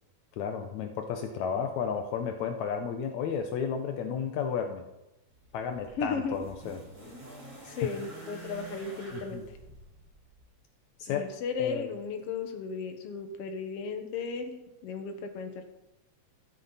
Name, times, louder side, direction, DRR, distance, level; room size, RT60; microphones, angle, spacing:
voice 1, 0.4-4.9 5.5-6.8 9.1-9.5 11.0-11.3 11.6-11.9, left 7 dB, 75° left, 5 dB, 2.1 m, -33 dB
sound 1, 5.3-10.5 11.6-11.7, right 2 dB, 40° right, 6.4 m, -48 dB
voice 2, 6.0-6.4 7.7-9.4 11.1-15.6, left 5 dB, 60° left, 5 dB, 2.1 m, -35 dB
14.0 x 13.0 x 4.1 m, 0.98 s
omnidirectional pair, 3.4 m